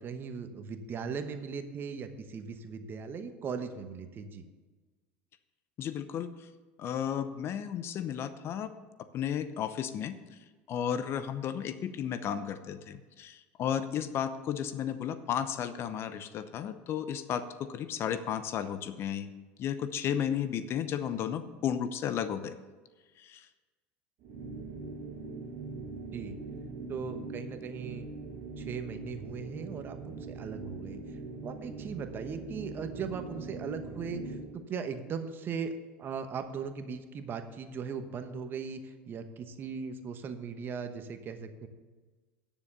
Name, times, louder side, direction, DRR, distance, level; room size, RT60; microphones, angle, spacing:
voice 1, 0.0-4.4 26.1-26.3 26.9-28.1 28.6-31.0 31.4-35.7 36.0-41.7, right 6 dB, 40° right, 8 dB, 1.1 m, -38 dB
voice 2, 5.8-6.5 6.8-8.7 9.1-10.2 10.7-19.3 19.6-22.6 23.2-23.5, left 9 dB, 45° left, 12 dB, 0.7 m, -33 dB
sound 1, 24.2-34.6, right 3 dB, 60° right, 1.8 m, -42 dB
9.7 x 7.0 x 6.6 m, 1.3 s
supercardioid pair, 95°, 6 cm